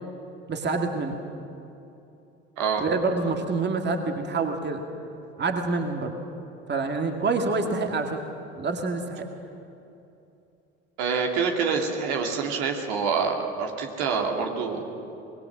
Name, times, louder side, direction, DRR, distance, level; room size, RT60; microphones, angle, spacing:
voice 1, 0.5-1.2 2.8-4.8 5.4-6.1 6.7-8.2 8.5-9.3, right 3 dB, 30° right, 4 dB, 2.2 m, -27 dB
voice 2, 11.0-14.8, right 5 dB, 60° right, 2 dB, 2.6 m, -26 dB
25.0 x 21.0 x 6.3 m, 2.8 s
figure-of-eight pair, 60°, 35 cm